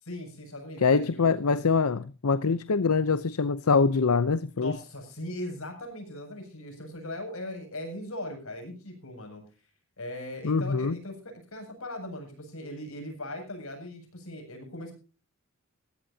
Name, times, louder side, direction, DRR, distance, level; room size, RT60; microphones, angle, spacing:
voice 1, 0.0-1.6 4.5-9.4 10.0-14.9, left 1 dB, 70° left, 7.5 m, -39 dB
voice 2, 0.8-4.8 10.4-11.0, left 4 dB, 85° left, 0.7 m, -24 dB
19.0 x 16.0 x 2.8 m
head